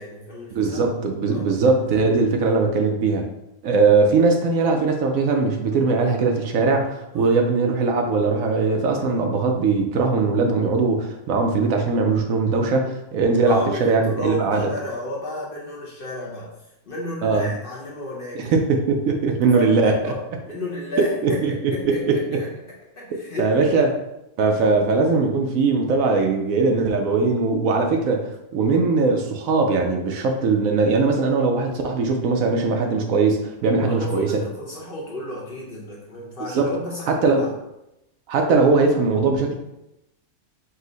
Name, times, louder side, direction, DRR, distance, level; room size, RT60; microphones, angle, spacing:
voice 1, 0.0-0.8 1.3-1.6 7.1-7.4 13.4-16.5 16.9-18.6 19.3-22.5 23.0-23.9 33.9-37.5, left 1 dB, 45° left, -4 dB, 0.9 m, -33 dB
voice 2, 0.5-3.2 3.6-14.7 17.2-17.5 18.3-20.1 21.2-22.4 23.4-23.9 24.4-34.3 36.5-36.7 37.1-37.4 38.3-39.5, right 4 dB, 70° right, 3 dB, 1.0 m, -20 dB
5.4 x 2.1 x 3.8 m, 0.88 s
omnidirectional pair, 1.5 m